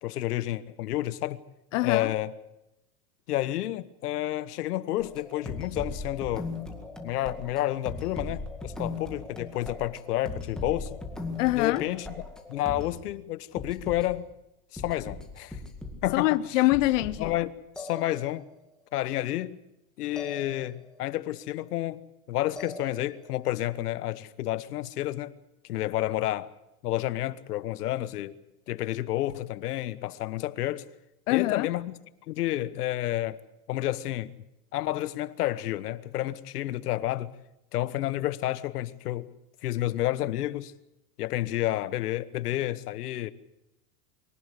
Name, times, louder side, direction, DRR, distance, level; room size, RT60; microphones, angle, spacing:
voice 1, 0.0-1.4 1.8-2.3 3.3-6.5 7.0-11.0 11.5-12.1 12.5-14.3 14.7-15.6 16.0-16.4 17.2-18.4 18.9-19.6 20.0-25.3 25.7-26.5 26.8-28.4 28.7-30.9 31.3-31.9 32.3-33.4 33.7-34.3 34.7-37.3 37.7-39.3 39.6-40.7 41.2-43.3, left 15 dB, 85° left, 1.3 m, -30 dB
voice 2, 1.7-2.1 11.4-11.8 16.1-17.3 31.3-31.7, left 18 dB, 55° left, 0.8 m, -24 dB
sound 1, 5.0-13.0 13.6-14.0 14.8-16.2 16.6-17.4 17.8-18.6 20.2-21.0 22.6-23.4, left 2 dB, ahead, 2.0 m, -39 dB
23.5 x 17.5 x 8.3 m
supercardioid pair, 170°, 45 cm